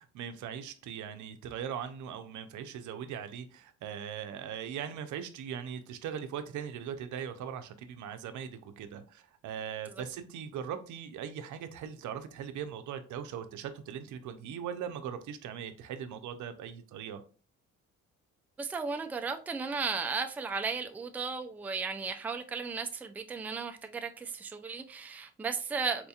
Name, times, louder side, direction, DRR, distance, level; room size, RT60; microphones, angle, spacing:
voice 1, 0.0-17.2, right 8 dB, 75° right, 0.6 m, -40 dB
voice 2, 18.6-26.1, right 5 dB, 5° right, 0.3 m, -35 dB
4.3 x 2.8 x 2.3 m
cardioid pair, 90°, 30 cm